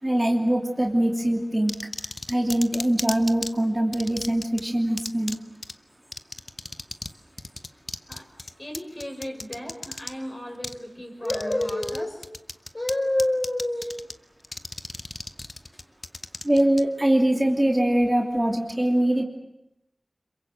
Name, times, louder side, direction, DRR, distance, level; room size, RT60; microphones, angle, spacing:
voice 1, 0.0-1.7 2.3-5.4 16.4-19.2, right 1 dB, 25° right, 2 dB, 2.9 m, -22 dB
sound 1, 1.7-3.5 3.9-4.6 5.0-5.4 5.6-5.7 6.1-7.1 7.4-10.1 10.6-10.8 11.2-12.0 12.2-12.9 13.2-14.1 14.4-16.8, left 2 dB, 55° left, 1.0 m, -34 dB
voice 2, 8.1-12.3 12.7-14.0 15.7-15.8, left 1 dB, 35° left, 2 dB, 6.6 m, -30 dB
27.0 x 23.0 x 7.9 m, 0.83 s
wide cardioid pair, 50°, 0 cm